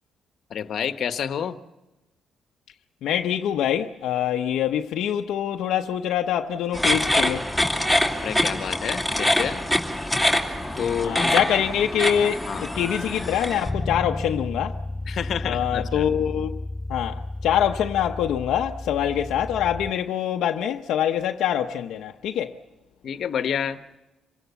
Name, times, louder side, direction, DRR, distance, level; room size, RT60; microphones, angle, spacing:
voice 1, 0.5-1.6 8.2-9.6 10.8-11.3 12.5-12.7 15.1-16.1 23.0-23.8, left 8 dB, 60° left, 1.1 m, -29 dB
voice 2, 3.0-7.5 11.0-14.8 15.4-16.6 16.9-22.6, left 10 dB, 85° left, 0.7 m, -25 dB
sound 1, 6.7-13.7, left 1 dB, ahead, 2.7 m, -24 dB
Bass guitar, 13.7-19.9, left 2 dB, 15° left, 3.7 m, -32 dB
26.5 x 17.0 x 8.2 m
cardioid pair, 110°, 0 cm